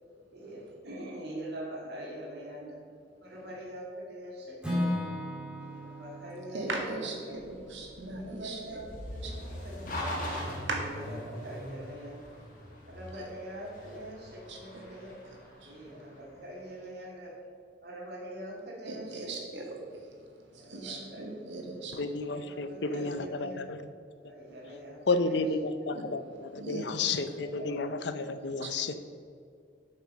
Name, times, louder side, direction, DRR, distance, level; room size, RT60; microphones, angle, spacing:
voice 1, 0.3-2.8 3.2-4.9 5.5-7.1 8.2-9.4 9.6-10.2 10.7-12.2 12.9-15.1 15.7-17.3 17.8-19.7 20.6-21.5 22.3-23.7 24.2-25.5 27.4-27.9 28.6-28.9, right 1 dB, 55° right, -3 dB, 2.3 m, -44 dB
Acoustic guitar / Strum, 4.6-8.7, left 1 dB, 5° right, 1.7 m, -36 dB
voice 2, 6.5-8.8 9.2-9.3 10.7-10.8 13.8-13.9 14.5-14.8 15.2-15.7 18.8-19.7 20.5-21.9 25.9-26.2 26.5-27.2 28.6-28.7, right 2 dB, 80° right, 0 dB, 1.7 m, -39 dB
sound 1, 7.3-16.6, equal, 45° left, 1.9 m, -41 dB
voice 3, 22.0-23.8 25.1-25.6 25.9-28.9, left 3 dB, 65° left, 11 dB, 0.6 m, -31 dB
7.6 x 5.6 x 6.7 m, 2.3 s
head